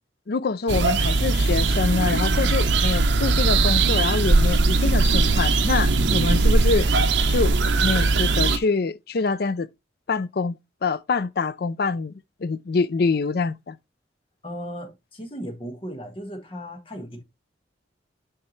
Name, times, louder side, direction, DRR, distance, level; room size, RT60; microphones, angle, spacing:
voice 1, 0.3-6.9 7.3-9.7 10.1-12.1 12.4-13.8, left 4 dB, 55° left, 0.5 m, -25 dB
sound 1, 0.7-8.6, right 3 dB, 75° right, 0.8 m, -20 dB
voice 2, 14.4-17.2, equal, 30° left, 1.7 m, -36 dB
7.2 x 5.0 x 3.2 m
head